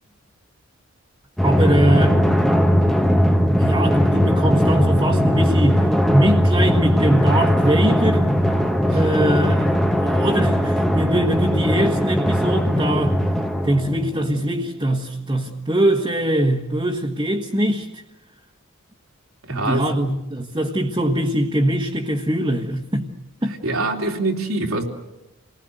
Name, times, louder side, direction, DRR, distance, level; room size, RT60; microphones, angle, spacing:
Drum, 1.4-14.5, equal, ahead, 1.2 m, -19 dB
voice 1, 1.4-2.2 3.6-8.4 8.9-13.2 13.6-18.0 19.5-23.1 23.4-23.6, right 1 dB, 20° right, -1 dB, 1.6 m, -22 dB
voice 2, 19.5-19.8 23.6-24.8, right 2 dB, 90° right, 1 dB, 3.3 m, -23 dB
28.5 x 19.5 x 8.0 m, 0.93 s
head